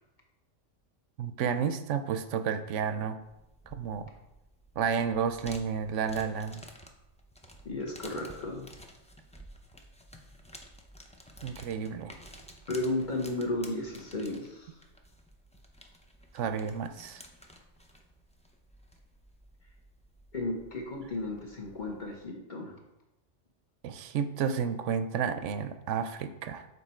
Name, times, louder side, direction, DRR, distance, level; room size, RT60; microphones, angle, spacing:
voice 1, 1.2-3.2 3.7-4.1 4.8-6.6 11.4-12.1 16.3-17.2 23.8-26.7, right 7 dB, 75° right, 10 dB, 0.9 m, -31 dB
sound 1, 3.2-22.3, equal, 10° left, 0.3 m, -53 dB
voice 2, 7.6-8.7 12.7-14.7 20.3-22.8, left 2 dB, 40° left, 0 dB, 1.2 m, -34 dB
7.0 x 4.1 x 4.3 m, 0.93 s
omnidirectional pair, 1.3 m